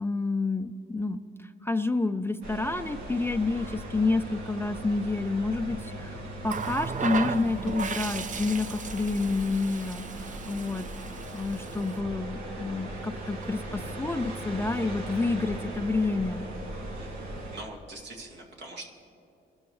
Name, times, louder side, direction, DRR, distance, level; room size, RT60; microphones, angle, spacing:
voice 1, 0.0-10.9 11.3-16.5, left 3 dB, 10° left, 9 dB, 0.4 m, -29 dB
sound 1, 2.4-17.6, right 1 dB, 85° right, 2.2 m, -39 dB
Water tap faucet, 6.4-12.0 13.2-13.4, right 5 dB, 40° right, 0.7 m, -36 dB
voice 2, 17.0-18.9, right 2 dB, 65° right, -1 dB, 2.6 m, -44 dB
24.5 x 12.5 x 3.2 m, 2.6 s
cardioid pair, 90°, 20 cm